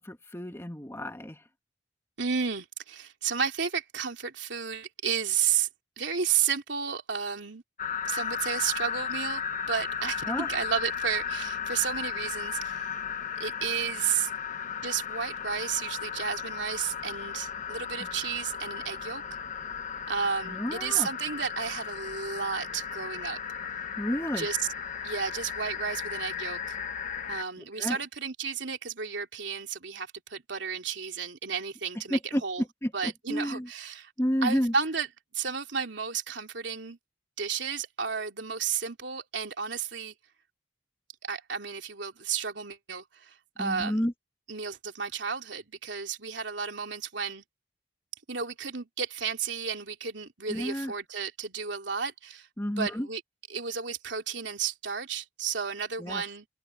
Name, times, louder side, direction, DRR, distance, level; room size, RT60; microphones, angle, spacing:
voice 1, 0.0-1.4 10.3-10.5 20.5-21.1 24.0-24.5 27.8-28.0 32.1-32.4 32.8-33.7 34.2-34.7 43.6-44.1 50.5-50.9 52.6-53.1 56.0-56.2, equal, 15° left, 1.8 m, -30 dB
voice 2, 2.2-5.7 6.0-7.6 8.0-13.0 13.4-14.3 14.8-19.2 20.1-23.4 24.3-24.7 25.0-26.8 27.3-32.6 32.9-34.1 34.4-35.1 35.3-37.0 37.4-40.1 41.2-44.1 44.5-47.4 48.3-53.2 53.5-56.5, right 6 dB, 90° right, 2.9 m, -32 dB
sound 1, 7.8-27.4, left 7 dB, 45° left, 1.2 m, -35 dB
open air
head